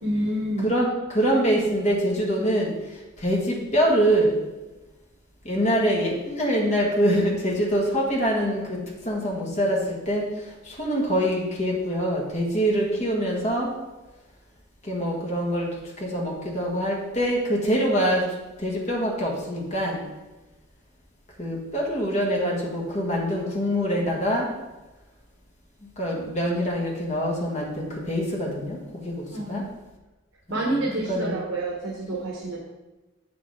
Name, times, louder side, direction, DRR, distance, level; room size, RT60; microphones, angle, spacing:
voice 1, 0.0-0.7 29.3-29.7 30.5-32.6, right 1 dB, 75° right, -2 dB, 1.2 m, -28 dB
voice 2, 0.6-2.7 3.2-4.3 5.4-8.8 9.0-10.3 10.7-13.7 14.8-15.7 16.0-18.2 18.6-20.0 21.4-24.5 26.0-29.2 29.5-29.6 30.5-30.8 31.1-31.4, equal, 35° left, -2 dB, 1.7 m, -24 dB
7.2 x 6.3 x 3.8 m, 1.1 s
head